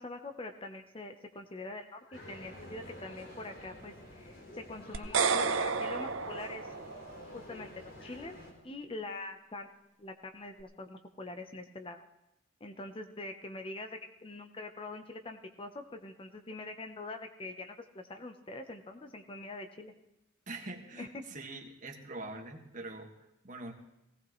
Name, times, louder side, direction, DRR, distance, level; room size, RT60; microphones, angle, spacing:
voice 1, 0.0-6.7 7.3-8.4 8.6-9.7 10.0-12.0 12.6-19.9 21.0-21.2, left 2 dB, 25° left, 6 dB, 0.7 m, -44 dB
Meow, 1.9-2.4 2.9-3.0 5.0-5.7 7.3-7.4 7.9-8.2, left 1 dB, 70° left, 5.6 m, -56 dB
sound 1, 2.1-8.5, left 1 dB, 45° left, 4.2 m, -50 dB
sound 2, 4.9-7.2, right 5 dB, 65° right, 0.7 m, -31 dB
voice 2, 20.5-23.7, right 2 dB, 40° right, 2 dB, 1.7 m, -44 dB
18.5 x 17.0 x 3.1 m, 0.89 s
head